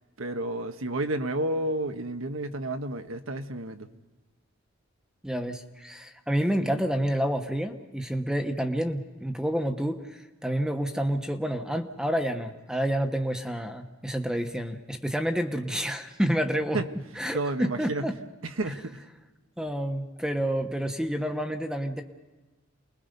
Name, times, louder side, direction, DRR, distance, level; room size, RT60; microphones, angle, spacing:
voice 1, 0.0-3.9 6.6-6.8 16.7-16.9 17.3-18.1 18.4-19.0, right 2 dB, 90° right, 7 dB, 1.4 m, -31 dB
voice 2, 5.2-16.8 17.2-18.2 19.6-22.0, equal, 5° right, 6 dB, 1.2 m, -29 dB
29.0 x 21.5 x 5.3 m, 1.2 s
head